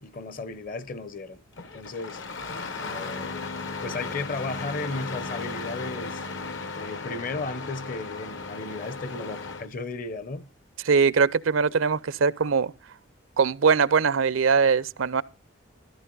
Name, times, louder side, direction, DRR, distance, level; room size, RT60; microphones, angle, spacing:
voice 1, 0.0-1.4 1.7-2.2 2.8-3.5 3.8-6.2 6.7-10.5, left 3 dB, 40° left, 0.8 m, -35 dB
Engine starting, 1.5-9.7, left 4 dB, 65° left, 1.1 m, -35 dB
voice 2, 10.8-12.7 13.4-15.2, right 5 dB, 75° right, 0.6 m, -21 dB
14.0 x 13.0 x 3.9 m
head